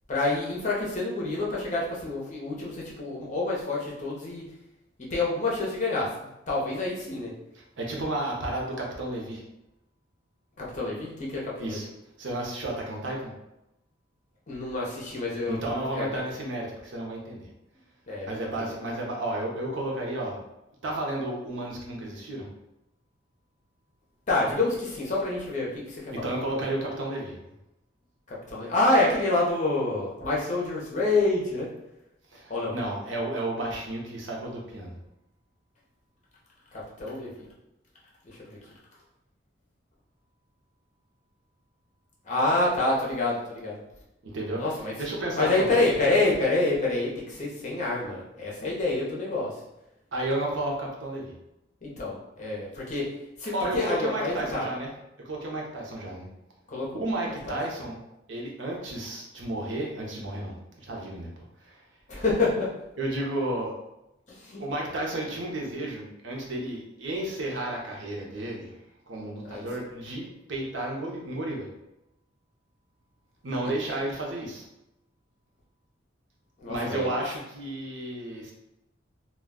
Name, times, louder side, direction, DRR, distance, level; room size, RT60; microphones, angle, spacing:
voice 1, 0.1-4.4 5.1-7.3 10.6-11.9 14.5-15.6 15.9-16.2 18.1-18.7 24.3-26.6 28.3-31.7 32.5-32.7 36.7-37.5 38.2-38.6 42.2-43.8 44.6-44.9 45.3-49.6 51.8-53.1 53.4-54.6 56.7-57.0 57.5-57.6 62.1-62.7 64.3-64.6 69.4-69.7 73.9-74.0 76.6-77.1, left 2 dB, 40° left, -4 dB, 0.7 m, -27 dB
voice 2, 7.8-9.4 11.6-11.9 12.2-13.3 15.5-17.5 18.3-20.4 20.8-22.5 26.1-27.4 32.3-34.9 44.2-44.6 45.0-45.8 50.1-51.3 53.5-54.9 55.2-56.3 56.9-58.0 58.3-61.8 63.0-63.7 64.6-68.7 69.1-71.7 73.4-74.6 76.7-78.5, right 1 dB, 80° right, -1 dB, 0.7 m, -32 dB
2.3 x 2.2 x 3.5 m, 0.89 s
head